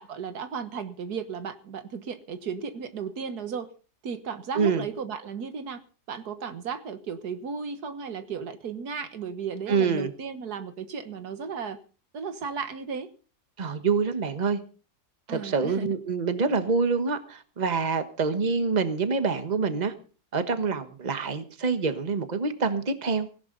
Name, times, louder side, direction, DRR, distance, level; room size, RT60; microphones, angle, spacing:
voice 1, 0.0-3.7 4.0-5.8 6.1-11.8 12.1-13.1 15.3-16.0, right 6 dB, 80° right, 10 dB, 1.8 m, -35 dB
voice 2, 9.7-10.1 13.6-14.6 15.3-19.9 20.3-23.3, right 5 dB, 30° right, 9 dB, 1.4 m, -26 dB
17.5 x 16.5 x 4.0 m, 0.38 s
omnidirectional pair, 1.7 m